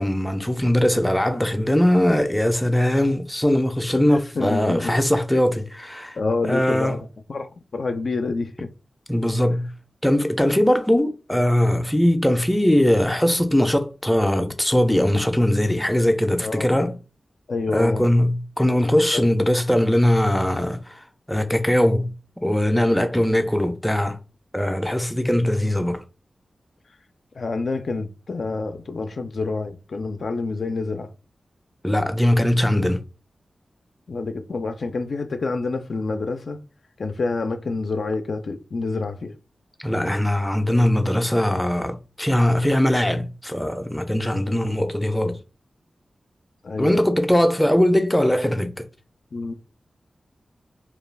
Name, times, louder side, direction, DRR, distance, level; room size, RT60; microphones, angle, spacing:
voice 1, 0.0-6.2 6.4-7.0 9.1-9.7 10.0-17.0 17.7-21.0 21.3-22.1 22.4-24.2 24.5-26.0 31.8-33.0 39.8-45.4 46.8-48.9, left 1 dB, 5° left, 0.4 m, -20 dB
voice 2, 4.4-4.9 6.2-8.7 9.5-9.6 16.4-16.8 17.5-18.1 19.1-19.3 25.6-25.7 27.4-31.1 32.8-32.9 34.1-36.6 37.0-39.3 40.7-40.9 44.5-44.7 46.6-47.0 49.3-49.5, left 3 dB, 70° left, 0.3 m, -28 dB
2.3 x 2.3 x 3.2 m
cardioid pair, 55°, 0 cm